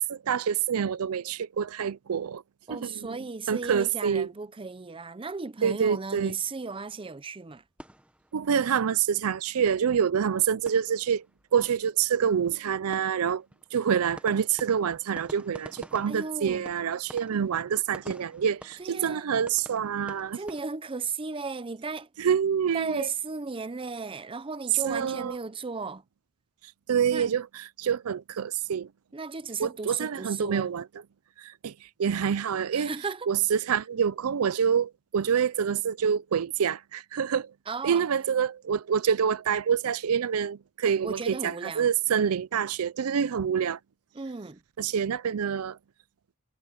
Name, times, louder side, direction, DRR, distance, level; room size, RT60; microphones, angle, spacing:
voice 1, 0.1-2.4 2.7-3.2 3.5-4.3 5.6-6.3 8.3-11.2 11.5-13.4 13.7-20.4 22.2-23.1 24.8-25.3 26.9-27.5 27.8-28.9 29.6-30.9 31.4-31.7 32.0-32.9 33.3-37.5 37.8-43.8 44.8-45.8, right 7 dB, 85° right, 0.5 m, -26 dB
voice 2, 2.7-7.6 16.1-16.7 18.8-19.3 20.3-22.1 22.7-26.0 27.1-27.3 29.1-30.7 32.7-33.3 37.7-38.0 41.0-41.9 44.1-44.6, right 4 dB, 25° right, 0.6 m, -35 dB
sound 1, 7.7-8.9 9.2-9.3 9.6-9.7 10.0-11.5 11.7-11.9 12.1-20.6, right 1 dB, 5° right, 1.1 m, -49 dB
head